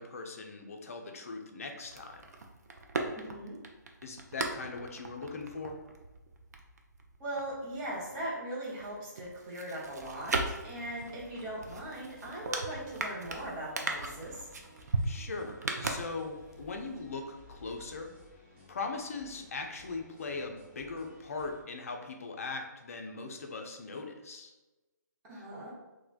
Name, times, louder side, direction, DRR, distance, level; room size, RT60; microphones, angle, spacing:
voice 1, 0.0-2.2 4.0-5.8 15.0-18.1 18.7-24.5, left 3 dB, 50° left, 4 dB, 0.4 m, -40 dB
sound 1, 1.8-8.3 8.6-16.6 16.9-17.0, right 3 dB, 60° right, 0.4 m, -38 dB
voice 2, 3.2-3.6 7.2-10.3 10.6-14.5 25.3-25.7, right 1 dB, 20° right, -7 dB, 0.8 m, -39 dB
sound 2, 9.8-21.6, left 1 dB, 40° right, 0.9 m, -57 dB
3.1 x 2.1 x 2.4 m, 1.1 s
figure-of-eight pair, 140°, 10 cm